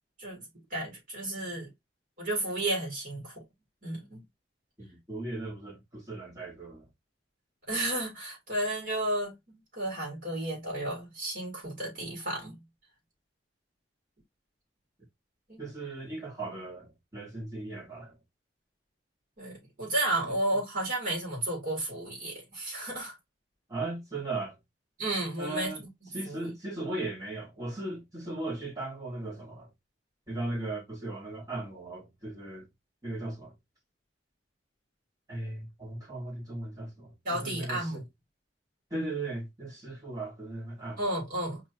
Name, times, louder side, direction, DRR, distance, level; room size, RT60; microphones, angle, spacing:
voice 1, 0.2-1.7 2.2-3.4 3.8-4.2 7.7-12.6 15.5-15.6 19.4-23.1 25.0-25.9 26.2-26.5 37.2-38.0 41.0-41.6, right 1 dB, 50° right, 3.4 m, -33 dB
voice 2, 4.8-6.9 15.6-18.2 20.2-20.4 23.7-24.6 25.4-25.8 26.1-29.7 30.3-32.7 33.0-33.5 35.3-38.0 38.9-41.0, right 2 dB, 20° right, 2.1 m, -37 dB
5.1 x 3.1 x 2.9 m
head